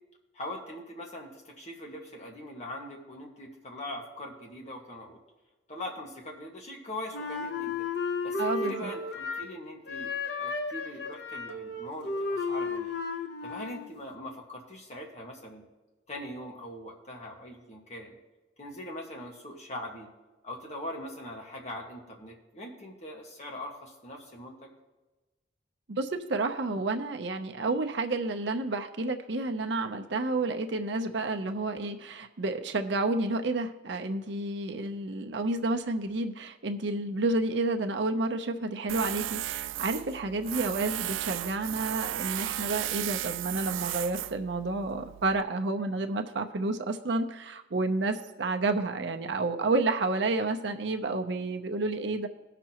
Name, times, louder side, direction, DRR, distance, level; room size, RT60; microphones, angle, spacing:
voice 1, 0.3-5.2 5.7-7.9 8.2-10.1 10.4-12.9 13.4-15.6 16.1-18.2 18.6-20.1 20.4-24.7, left 1 dB, 35° left, 0 dB, 1.6 m, -42 dB
Wind instrument woodwind instrument, 7.1-9.6 9.9-13.9, left 4 dB, 60° left, 0.8 m, -33 dB
voice 2, 8.4-8.9 25.9-52.3, right 2 dB, 65° right, 5 dB, 0.7 m, -30 dB
Tools, 38.9-45.4, right 13 dB, 85° right, 0.3 m, -35 dB
18.0 x 6.0 x 3.0 m, 1.1 s
head